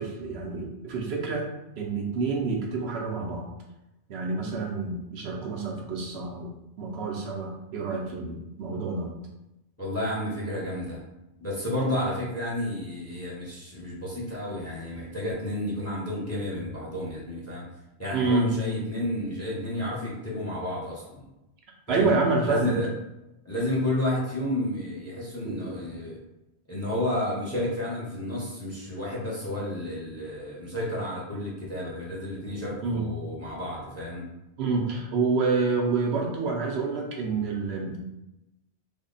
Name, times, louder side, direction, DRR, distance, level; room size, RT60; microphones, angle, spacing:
voice 1, 0.0-1.5 1.8-3.5 4.1-9.1 18.1-18.6 21.9-22.7 25.4-25.8 32.8-33.1 34.6-38.0, right 4 dB, 70° right, 0 dB, 0.9 m, -28 dB
voice 2, 9.8-11.0 11.4-17.6 18.0-21.2 21.9-22.1 22.5-22.9 23.4-26.2 26.7-34.3, left 1 dB, 15° left, -6 dB, 0.8 m, -31 dB
3.5 x 2.1 x 3.9 m, 0.94 s
omnidirectional pair, 1.2 m